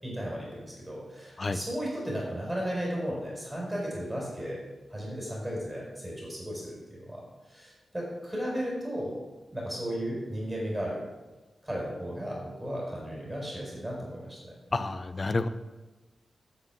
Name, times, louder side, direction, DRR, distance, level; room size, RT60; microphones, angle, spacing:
voice 1, 0.0-4.6 4.9-7.2 7.5-9.1 9.5-11.0 11.6-14.5, equal, 5° right, -3 dB, 4.7 m, -35 dB
voice 2, 14.7-15.5, left 3 dB, 35° left, 11 dB, 0.7 m, -29 dB
10.0 x 8.3 x 7.4 m, 1.2 s
wide cardioid pair, 125°, 0 cm